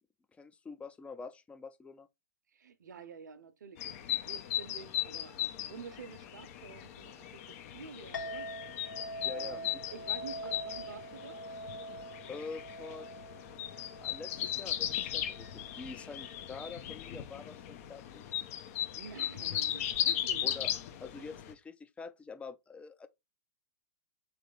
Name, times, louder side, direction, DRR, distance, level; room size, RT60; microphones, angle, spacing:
voice 1, 0.4-2.1 9.2-9.8 12.3-13.1 14.0-18.2 20.4-20.7 21.0-23.1, left 4 dB, 10° left, 0.5 m, -46 dB
voice 2, 2.5-8.5 9.3-11.4 19.0-20.5, right 6 dB, 80° right, 0.8 m, -49 dB
sound 1, 3.8-21.5, left 11 dB, 50° left, 0.7 m, -37 dB
Chink clink, 8.1-16.8, equal, 90° left, 1.9 m, -45 dB
3.3 x 3.3 x 3.8 m
hypercardioid pair, 115°, 10 cm